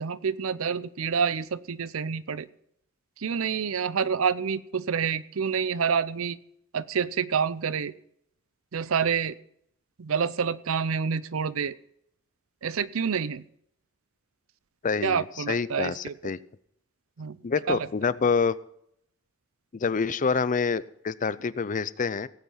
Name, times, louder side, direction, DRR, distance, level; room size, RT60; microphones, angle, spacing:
voice 1, 0.0-2.5 3.2-6.4 6.7-7.9 8.7-9.4 10.0-11.7 12.6-13.4 15.0-16.3 17.2-17.4 17.7-18.1, right 6 dB, 70° right, 18 dB, 0.6 m, -28 dB
voice 2, 14.8-16.4 17.4-18.6 19.7-22.3, left 5 dB, 40° left, 17 dB, 0.5 m, -27 dB
17.5 x 8.4 x 5.7 m, 0.71 s
head